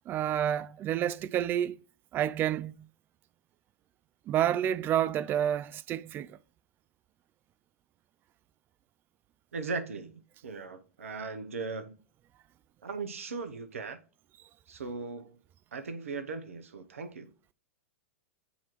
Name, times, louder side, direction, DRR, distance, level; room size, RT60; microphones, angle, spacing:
voice 1, 0.1-1.8 2.1-2.9 4.3-6.4, right 10 dB, 30° right, 0.3 m, -29 dB
voice 2, 9.5-12.0 12.8-14.0 14.7-15.4 15.7-17.3, right 4 dB, 80° right, 0.9 m, -38 dB
8.4 x 2.9 x 4.6 m
hypercardioid pair, 105°, 7 cm